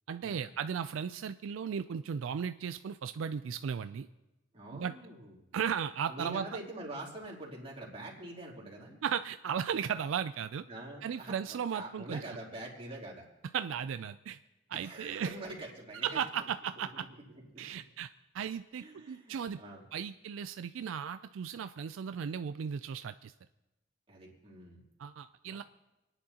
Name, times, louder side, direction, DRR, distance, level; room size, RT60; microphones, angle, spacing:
voice 1, 0.1-4.1 4.7-4.9 5.5-6.5 9.0-10.6 11.0-12.2 13.5-14.4 14.7-15.3 16.0-17.1 17.6-18.1 18.3-19.6 19.9-23.3 25.0-25.6, right 7 dB, 80° right, 11 dB, 0.4 m, -36 dB
voice 2, 4.5-5.4 6.1-9.0 10.7-13.3 14.7-16.5 17.5-17.6 18.7-19.8 24.1-24.8 25.6-25.7, right 1 dB, 30° right, -4 dB, 3.2 m, -45 dB
27.0 x 10.0 x 2.9 m, 1.0 s
head